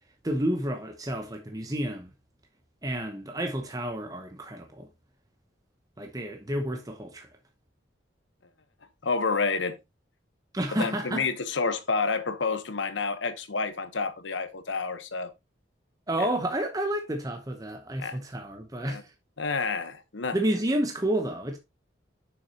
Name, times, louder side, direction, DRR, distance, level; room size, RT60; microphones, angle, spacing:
voice 1, 0.2-2.1 2.8-4.9 6.0-7.3 10.5-11.3 16.1-19.0 20.3-21.6, right 1 dB, 20° right, 0.8 m, -30 dB
voice 2, 9.0-9.8 10.8-15.3 16.2-16.3 18.0-18.2 18.8-19.0 19.4-20.4, left 4 dB, 75° left, 1.0 m, -29 dB
7.1 x 6.2 x 2.8 m
head